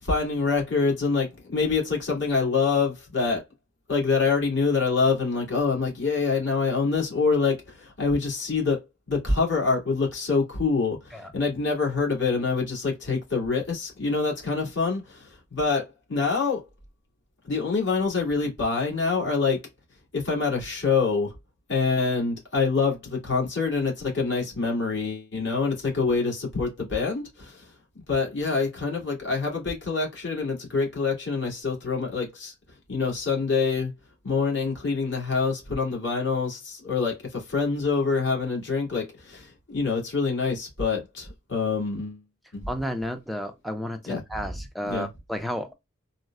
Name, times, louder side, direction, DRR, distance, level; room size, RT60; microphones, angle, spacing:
voice 1, 0.0-3.4 3.9-8.8 9.1-16.6 17.5-19.6 20.1-21.3 21.7-27.6 28.1-32.5 32.9-33.9 34.2-42.2 42.5-42.7 44.1-44.2 44.9-45.1, left 4 dB, 65° left, 1.9 m, -26 dB
voice 2, 42.7-45.7, equal, ahead, 0.4 m, -32 dB
4.1 x 2.0 x 2.3 m
head